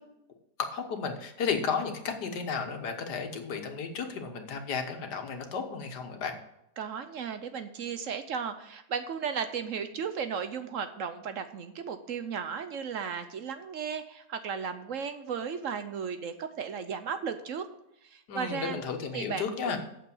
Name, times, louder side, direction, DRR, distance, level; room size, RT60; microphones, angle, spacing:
voice 1, 0.6-6.3 18.3-19.8, left 5 dB, 85° left, 5 dB, 1.8 m, -33 dB
voice 2, 6.8-17.7 18.0-18.8 19.1-19.8, right 6 dB, 60° right, 9 dB, 0.9 m, -35 dB
8.4 x 6.8 x 7.0 m, 0.81 s
omnidirectional pair, 1.7 m